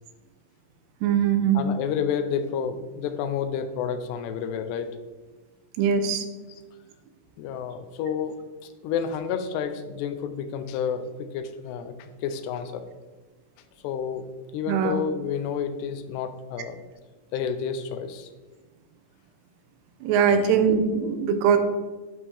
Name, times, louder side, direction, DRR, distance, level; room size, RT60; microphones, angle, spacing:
voice 1, 1.0-1.6 5.8-6.3 14.7-15.0 20.0-21.6, right 7 dB, 85° right, 8 dB, 2.9 m, -21 dB
voice 2, 1.5-5.0 7.4-8.4 8.6-12.8 13.8-14.2 14.5-16.8 17.3-18.3 20.3-20.5, left 7 dB, 90° left, 10 dB, 2.8 m, -30 dB
11.0 x 5.4 x 3.4 m, 1.3 s
omnidirectional pair, 4.7 m